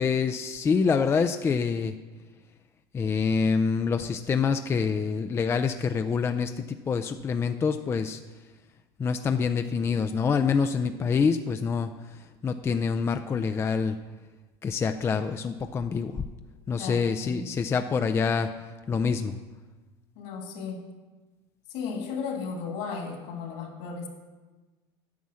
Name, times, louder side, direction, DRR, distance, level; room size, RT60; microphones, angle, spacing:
voice 1, 0.0-1.9 2.9-6.5 6.9-8.2 9.0-11.9 12.4-13.9 14.6-16.1 16.7-18.5 18.9-19.3, left 5 dB, 20° left, 8 dB, 0.4 m, -26 dB
voice 2, 16.8-17.6 20.2-20.8 21.7-24.1, left 5 dB, 65° left, 2 dB, 2.3 m, -35 dB
9.4 x 7.1 x 6.3 m, 1.3 s
supercardioid pair, 125°, 13 cm